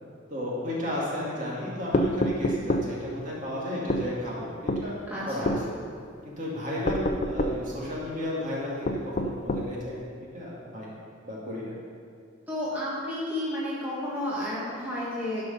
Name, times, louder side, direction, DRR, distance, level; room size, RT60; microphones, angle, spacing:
voice 1, 0.3-5.0 5.2-5.8 6.2-10.9 11.2-11.7, left 1 dB, 40° right, -5 dB, 2.3 m, -33 dB
sound 1, 1.9-2.9 3.9-4.1 4.7-4.9 5.5-5.6 6.9-7.6 8.9-9.7, left 1 dB, 35° left, 0.5 m, -26 dB
voice 2, 5.1-5.6 12.5-15.5, left 1 dB, 10° right, -9 dB, 1.6 m, -31 dB
11.5 x 5.5 x 5.5 m, 2.4 s
head